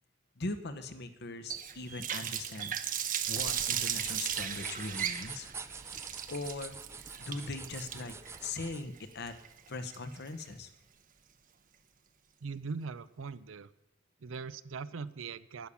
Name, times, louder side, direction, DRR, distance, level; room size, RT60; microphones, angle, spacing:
voice 1, 0.4-2.8 3.3-5.5 6.3-6.8 7.2-8.1 8.4-9.4 9.7-10.7, left 2 dB, 60° left, 9 dB, 1.1 m, -40 dB
Water tap faucet, 1.5-10.4, right 9 dB, 45° right, 0.8 m, -36 dB
sound 1, 3.2-8.8, right 5 dB, 15° right, 0.4 m, -46 dB
voice 2, 12.4-13.7 14.2-15.7, right 5 dB, 90° right, 16 dB, 0.5 m, -40 dB
10.5 x 10.0 x 7.1 m, 0.92 s
head